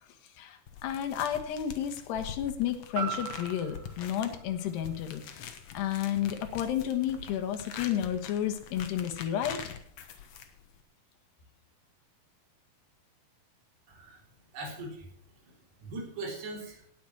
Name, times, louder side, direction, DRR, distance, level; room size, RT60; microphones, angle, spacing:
voice 1, 0.4-9.6, left 10 dB, 85° left, 6 dB, 3.4 m, -32 dB
sound 1, 0.7-10.8, left 7 dB, 65° left, 1.6 m, -45 dB
sound 2, 2.9-7.0 7.5-7.6, right 6 dB, 55° right, 4.9 m, -41 dB
voice 2, 13.9-14.2 14.5-15.1 15.5-16.8, right 2 dB, 80° right, -1 dB, 5.8 m, -40 dB
18.0 x 6.2 x 5.9 m, 0.64 s
omnidirectional pair, 4.7 m